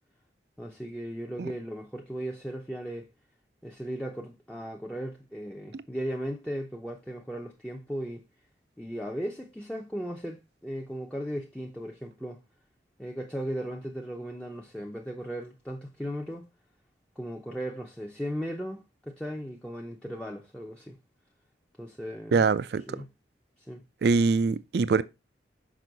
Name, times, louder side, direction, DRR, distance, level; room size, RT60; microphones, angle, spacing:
voice 1, 0.6-3.1 3.6-8.2 8.8-12.4 13.0-16.5 17.2-21.0 21.8-22.5 22.9-23.1 23.6-23.8, equal, 5° left, 0.6 m, -37 dB
voice 2, 22.3-23.0 24.0-25.0, right 4 dB, 60° right, 0.4 m, -23 dB
6.2 x 5.4 x 3.9 m
head